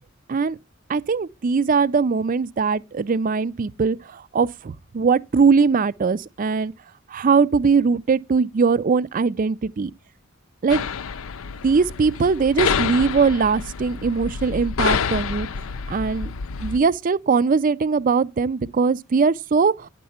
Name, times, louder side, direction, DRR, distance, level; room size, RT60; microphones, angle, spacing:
voice 1, 0.9-6.7 7.1-9.9 10.6-10.8 11.6-15.5 15.9-16.3 16.6-19.9, right 5 dB, 40° right, 0.4 m, -21 dB
sound 1, 10.7-16.8, left 6 dB, 90° left, 0.5 m, -27 dB
10.0 x 6.7 x 4.2 m
head